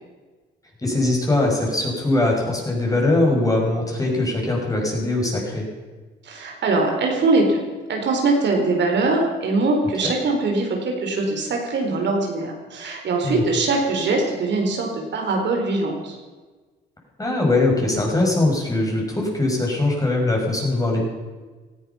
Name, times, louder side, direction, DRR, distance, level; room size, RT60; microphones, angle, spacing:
voice 1, 0.8-5.7 10.0-10.1 13.2-13.4 17.2-21.0, left 2 dB, 15° left, -1 dB, 6.1 m, -21 dB
voice 2, 6.2-7.6 7.9-16.2, right 3 dB, 65° right, 1 dB, 4.2 m, -22 dB
18.0 x 13.5 x 5.8 m, 1.3 s
cardioid pair, 90°, 20 cm